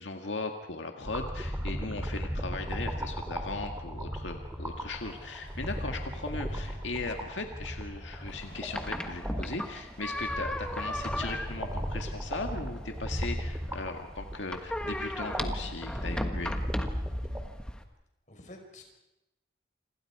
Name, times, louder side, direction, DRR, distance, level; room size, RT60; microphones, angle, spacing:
voice 1, 0.0-16.6, left 3 dB, 85° left, 4 dB, 1.9 m, -38 dB
sound 1, 1.0-17.4, equal, 10° right, 2.5 m, -37 dB
Cheering, 3.1-9.0, left 1 dB, 25° left, 7.7 m, -58 dB
sound 2, 8.3-17.8, left 1 dB, 5° left, 1.4 m, -37 dB
voice 2, 17.5-17.9 18.3-18.8, left 1 dB, 40° left, 3 dB, 5.4 m, -51 dB
28.5 x 26.5 x 4.9 m, 0.92 s
head